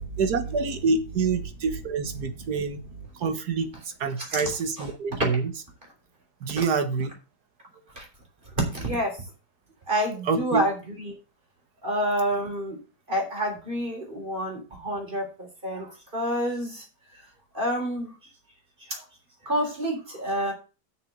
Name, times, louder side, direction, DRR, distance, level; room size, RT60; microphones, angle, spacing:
voice 1, 0.2-2.8 3.2-3.7 4.0-5.5 6.4-7.1 10.3-10.6, right 4 dB, 70° right, 1.8 m, -26 dB
voice 2, 8.7-9.2 9.9-11.1 11.8-12.8 13.1-16.8 17.5-18.1 18.9-19.0 19.4-20.5, equal, 30° right, 3.9 m, -28 dB
6.9 x 6.6 x 7.8 m
omnidirectional pair, 1.8 m